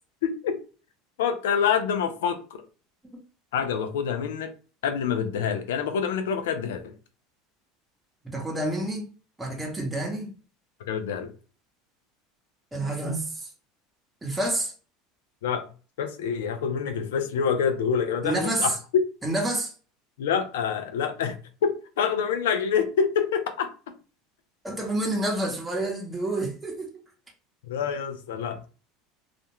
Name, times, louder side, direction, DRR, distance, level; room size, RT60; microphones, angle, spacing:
voice 1, 0.2-0.6 1.2-2.6 3.5-4.5 4.8-6.8 10.9-11.3 15.4-15.7 16.0-18.8 20.2-21.4 21.6-21.7 22.0-23.7 27.7-28.6, left 7 dB, 85° left, 0.4 m, -26 dB
voice 2, 8.3-9.1 9.4-10.3 12.7-13.5 14.2-14.7 18.2-18.8 19.2-19.7 24.6-27.0, right 1 dB, 10° right, 0.9 m, -28 dB
2.4 x 2.1 x 2.9 m
supercardioid pair, 100°, 0 cm